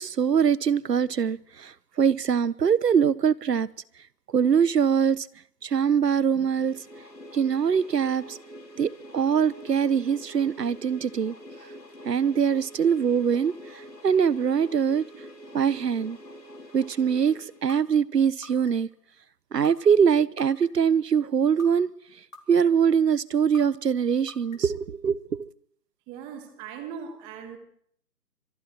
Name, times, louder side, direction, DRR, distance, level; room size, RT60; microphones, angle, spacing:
voice 1, 0.0-3.7 4.3-5.3 5.6-6.8 7.3-8.4 8.8-11.3 12.0-15.0 15.5-16.2 16.7-18.9 19.5-21.9 22.5-25.5, right 7 dB, 80° right, 1.1 m, -23 dB
sound 1, 6.3-18.1, equal, 85° left, 7.1 m, -46 dB
sound 2, 17.7-17.8 18.4-18.9 19.6-19.7 20.4-20.9 21.6-21.7 22.3-22.8 23.5-23.6 24.3-24.8, left 3 dB, 55° left, 3.2 m, -44 dB
voice 2, 26.1-27.6, right 7 dB, 10° right, 1.4 m, -39 dB
29.5 x 25.0 x 4.5 m
hypercardioid pair, 160°, 48 cm